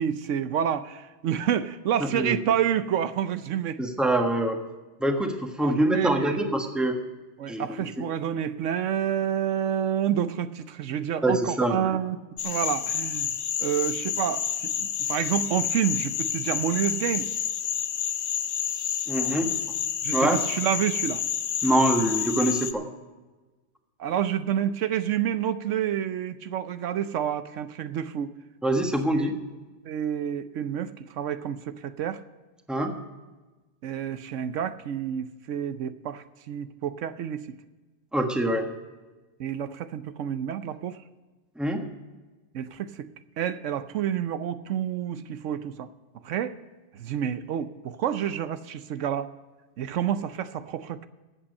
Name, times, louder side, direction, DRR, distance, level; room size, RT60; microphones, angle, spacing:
voice 1, 0.0-3.8 5.6-6.5 7.4-12.2 12.4-13.3 13.6-17.3 20.0-21.2 24.0-28.3 29.1-29.4 29.8-32.2 33.8-37.6 39.4-41.0 42.5-43.1 43.4-45.9 46.2-46.6 46.9-49.3 49.8-51.1, right 9 dB, 80° right, 12 dB, 1.0 m, -29 dB
voice 2, 2.0-2.4 3.8-4.6 5.0-7.0 7.5-7.9 11.2-12.0 19.1-19.5 20.1-20.4 21.6-22.9 28.6-29.4 32.7-32.9 38.1-38.7 41.6-41.8, right 1 dB, ahead, 3 dB, 1.3 m, -24 dB
sound 1, 12.4-22.7, left 9 dB, 60° left, 0.9 m, -29 dB
14.0 x 8.7 x 5.3 m, 1.2 s
omnidirectional pair, 1.2 m